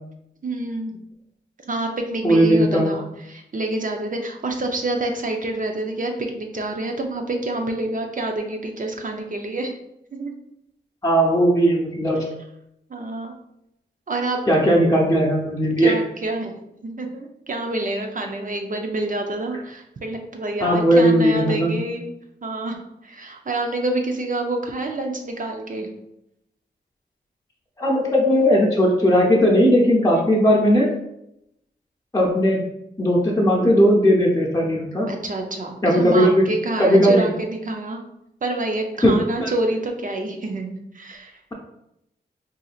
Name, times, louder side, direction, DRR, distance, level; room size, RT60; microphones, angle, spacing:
voice 1, 0.4-1.0 1.6-9.8 10.1-10.3 12.9-13.3 14.1-14.4 15.8-22.1 22.4-25.9 30.1-30.4 35.1-38.0 38.4-41.4, right 2 dB, 45° right, 3 dB, 0.6 m, -27 dB
voice 2, 2.2-2.9 11.0-12.2 14.5-15.9 20.6-21.7 27.8-30.9 32.1-32.6 33.0-35.1 35.8-36.4 36.8-37.2 39.0-39.5, equal, 20° left, -3 dB, 0.8 m, -17 dB
3.8 x 2.7 x 2.4 m, 0.82 s
cardioid pair, 45°, 19 cm